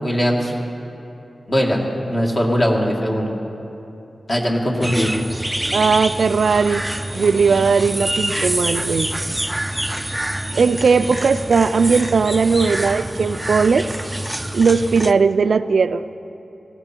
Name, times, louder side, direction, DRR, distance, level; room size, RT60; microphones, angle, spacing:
voice 1, 0.0-0.5 1.5-1.8 2.1-3.3 4.3-5.1, equal, 35° left, -1 dB, 2.1 m, -20 dB
sound 1, 4.8-15.1, right 1 dB, 10° right, 0.4 m, -26 dB
voice 2, 5.7-6.8 7.1-9.1 10.6-13.9 14.5-16.0, right 5 dB, 80° right, 12 dB, 0.4 m, -17 dB
18.0 x 15.5 x 4.5 m, 2.9 s
wide cardioid pair, 95°, 0 cm